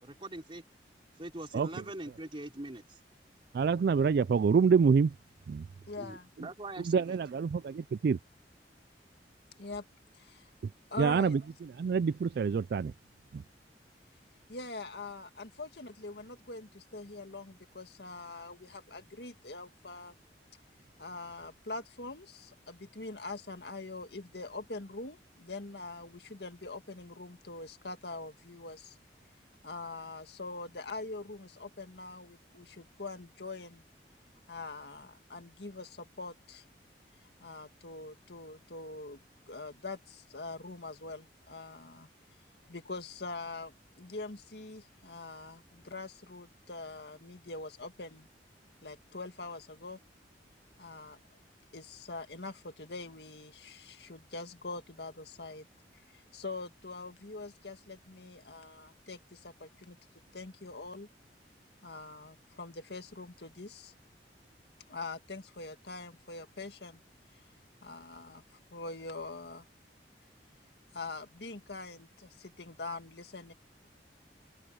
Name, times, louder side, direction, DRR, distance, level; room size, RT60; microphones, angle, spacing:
voice 1, 0.0-0.6 1.2-3.0 6.0-7.2 7.6-7.7, right 1 dB, 30° right, 3.2 m, -43 dB
voice 2, 3.5-5.1 5.5-5.7 6.4-6.5 6.8-8.2 11.0-12.9 13.3-13.4, right 5 dB, 60° right, 0.3 m, -27 dB
voice 3, 5.9-6.3 9.6-9.9 10.1-10.5 10.9-11.4 14.5-20.2 21.0-29.0 29.6-33.8 34.5-36.7 37.4-39.2 39.5-42.1 42.7-48.3 48.8-50.0 50.8-51.2 51.7-55.7 55.9-60.0 60.3-61.1 61.8-63.9 64.9-67.0 67.8-68.4 68.7-69.6 70.9-73.5, left 3 dB, 65° left, 2.0 m, -43 dB
head